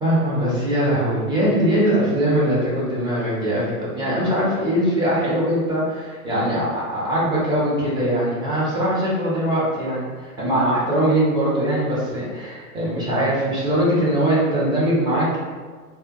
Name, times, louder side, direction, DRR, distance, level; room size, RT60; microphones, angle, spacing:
voice 1, 0.0-15.4, right 1 dB, 10° right, -8 dB, 0.6 m, -21 dB
3.3 x 2.2 x 2.7 m, 1.5 s
figure-of-eight pair, 105°, 45 cm